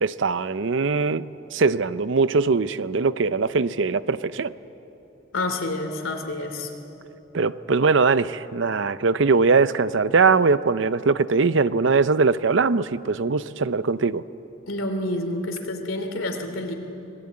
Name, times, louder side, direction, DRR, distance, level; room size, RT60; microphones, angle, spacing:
voice 1, 0.0-1.3 1.5-4.5 7.3-14.2, right 4 dB, 65° right, 15 dB, 0.6 m, -21 dB
voice 2, 5.3-6.7 14.7-16.7, left 2 dB, 85° left, 5 dB, 3.0 m, -28 dB
26.0 x 18.5 x 8.6 m, 3.0 s
head